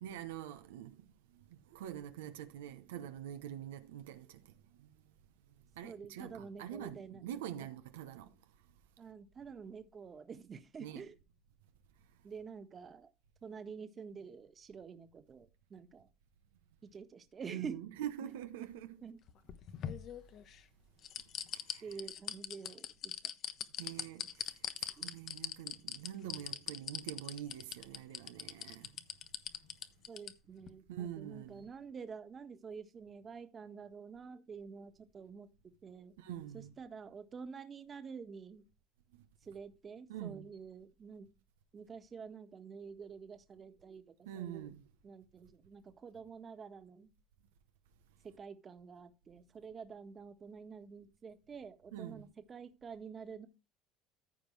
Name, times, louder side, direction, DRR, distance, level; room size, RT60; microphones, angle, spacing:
voice 1, 0.0-4.5 4.8-5.0 5.8-8.3 10.8-11.1 17.5-19.0 21.5-21.9 23.8-28.9 30.9-31.6 36.2-36.7 40.1-40.5 44.2-44.9 51.9-52.3, right 11 dB, 90° right, 0.9 m, -45 dB
voice 2, 5.8-7.3 7.6-7.7 9.0-11.2 12.2-13.1 13.4-16.1 16.8-17.8 18.2-18.3 19.0-19.2 21.8-23.2 25.0-25.1 25.8-25.9 30.1-36.2 36.5-38.7 39.4-41.3 41.7-44.7 45.0-47.1 48.2-53.5, right 6 dB, 35° right, 1.6 m, -48 dB
sound 1, 19.3-20.6 21.0-30.3 30.7-30.8, left 10 dB, 55° left, 1.1 m, -41 dB
14.5 x 5.2 x 3.3 m
supercardioid pair, 85°, 0 cm